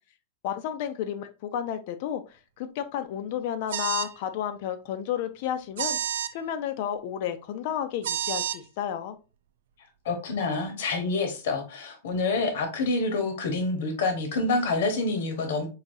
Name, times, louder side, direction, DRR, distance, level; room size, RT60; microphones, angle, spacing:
voice 1, 0.4-9.2, left 10 dB, 50° left, 10 dB, 0.6 m, -32 dB
sound 1, 3.7-4.1 5.8-6.3 8.0-8.6, right 10 dB, 80° right, 0.5 m, -29 dB
voice 2, 10.0-15.7, left 3 dB, 70° left, 5 dB, 1.2 m, -27 dB
4.7 x 2.8 x 2.7 m, 0.32 s
supercardioid pair, 155°, 0 cm